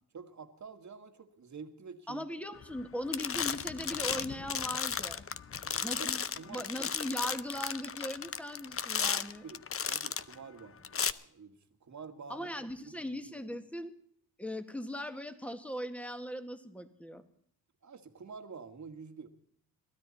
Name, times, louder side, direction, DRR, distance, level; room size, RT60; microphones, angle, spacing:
voice 1, 0.1-2.2 5.5-6.1 6.4-6.7 9.4-12.5 12.9-13.2 17.8-19.3, right 5 dB, 45° right, 7 dB, 2.0 m, -48 dB
voice 2, 2.1-5.3 5.8-6.2 6.5-9.4 12.3-13.9 14.4-17.2, equal, 5° left, 8 dB, 1.9 m, -39 dB
sound 1, 2.6-2.9 3.1-10.3 10.8-11.1, left 7 dB, 35° left, 0.7 m, -34 dB
22.5 x 13.5 x 4.2 m, 0.64 s
cardioid pair, 65°, 38 cm